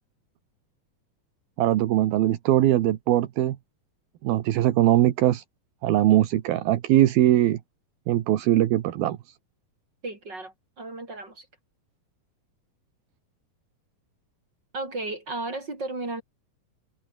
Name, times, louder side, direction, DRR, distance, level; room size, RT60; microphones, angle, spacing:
voice 1, 1.6-3.6 4.2-5.4 5.8-7.6 8.1-9.2, right 13 dB, 80° right, 3.3 m, -21 dB
voice 2, 10.0-11.5 14.7-16.2, right 2 dB, 30° right, 5.4 m, -34 dB
omnidirectional pair, 4.2 m